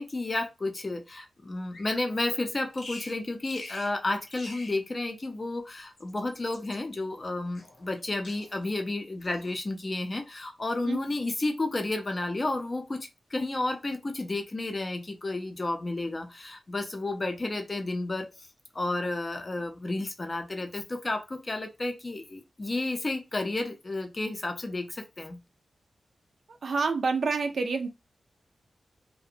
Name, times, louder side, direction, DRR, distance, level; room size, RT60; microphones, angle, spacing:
voice 1, 0.0-13.0 13.3-18.3 18.7-25.4, left 2 dB, 30° left, 0.4 m, -32 dB
Bird vocalization bird call bird song, 1.7-2.1 2.7-3.2 3.5-3.9 4.3-4.8 5.8-6.8 7.6-8.7 9.2-9.6, left 2 dB, 65° left, 0.7 m, -45 dB
voice 2, 26.6-27.9, right 4 dB, 60° right, 0.3 m, -27 dB
2.5 x 2.0 x 2.7 m
wide cardioid pair, 145°, 0 cm